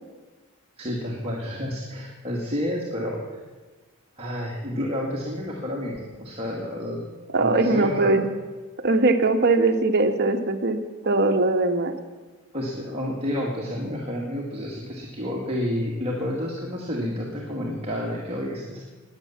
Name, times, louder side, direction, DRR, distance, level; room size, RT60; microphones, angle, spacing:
voice 1, 0.8-3.2 4.2-7.0 7.4-8.2 12.5-18.8, left 1 dB, 25° right, -3 dB, 2.1 m, -30 dB
voice 2, 7.3-8.2 8.8-10.8 11.0-11.9, right 2 dB, 50° right, 6 dB, 1.3 m, -21 dB
20.5 x 8.4 x 7.2 m, 1.3 s
head